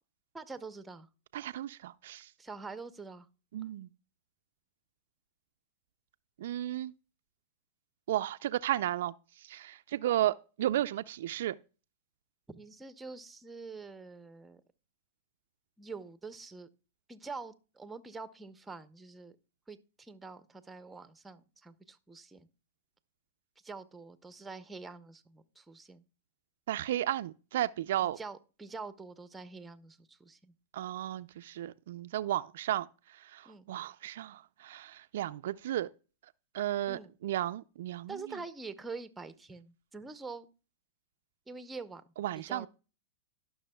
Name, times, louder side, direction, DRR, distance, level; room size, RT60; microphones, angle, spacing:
voice 1, 0.3-1.1 2.4-3.3 12.5-14.6 15.8-16.7 17.1-19.3 19.7-22.5 23.6-26.0 28.0-30.5 33.5-33.7 36.9-37.1 38.1-40.5 41.5-42.0 42.3-42.7, right 4 dB, 10° right, 0.6 m, -45 dB
voice 2, 1.3-2.3 3.5-3.9 6.4-6.9 8.1-9.1 9.4-11.6 26.7-28.2 30.7-32.9 33.2-35.9 36.5-38.1 42.2-42.7, right 13 dB, 70° right, 0.3 m, -33 dB
17.5 x 6.0 x 2.2 m
hypercardioid pair, 120°, 0 cm